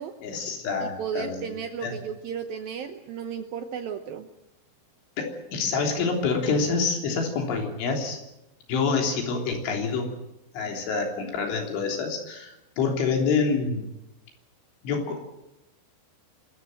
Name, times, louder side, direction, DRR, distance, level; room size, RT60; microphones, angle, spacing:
voice 1, 0.2-1.4 1.8-2.0 5.2-8.2 8.7-10.1 10.5-12.5 12.8-13.8 14.8-15.2, left 4 dB, 85° left, 2 dB, 5.9 m, -27 dB
voice 2, 0.8-4.3, right 7 dB, 80° right, 7 dB, 2.1 m, -34 dB
25.5 x 14.0 x 9.1 m, 0.93 s
omnidirectional pair, 5.3 m